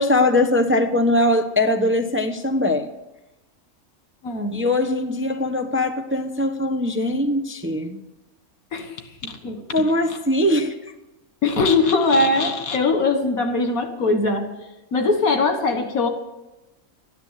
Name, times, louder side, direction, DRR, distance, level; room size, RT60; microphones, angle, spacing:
voice 1, 0.0-2.9 4.5-8.0 9.7-10.7, left 1 dB, 10° right, 5 dB, 0.7 m, -21 dB
voice 2, 4.2-4.6 8.7-9.0 9.2-9.6 11.4-14.6 14.9-16.1, left 3 dB, 75° left, 6 dB, 2.0 m, -21 dB
13.0 x 10.0 x 8.2 m, 1.0 s
omnidirectional pair, 1.5 m